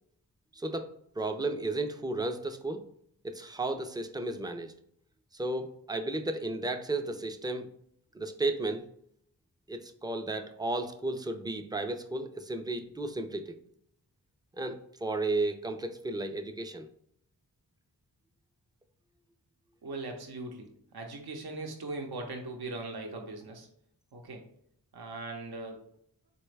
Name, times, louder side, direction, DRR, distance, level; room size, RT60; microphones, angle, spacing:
voice 1, 0.5-2.9 3.2-4.7 5.3-7.7 8.1-8.9 9.7-13.6 14.6-16.9, right 2 dB, 10° right, 7 dB, 0.4 m, -33 dB
voice 2, 19.8-23.7 24.1-24.4 24.9-25.8, right 2 dB, 65° right, 2 dB, 0.8 m, -40 dB
4.0 x 2.2 x 3.2 m, 0.68 s
cardioid pair, 40°, 40 cm